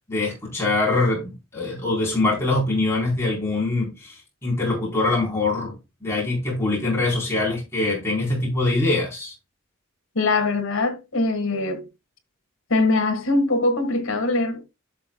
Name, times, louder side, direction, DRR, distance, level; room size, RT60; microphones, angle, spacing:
voice 1, 0.1-5.8 6.0-9.3, left 2 dB, 15° left, 4.1 m, -23 dB
voice 2, 10.2-11.9 12.7-14.6, left 2 dB, 70° left, 2.0 m, -22 dB
11.0 x 6.3 x 2.3 m
head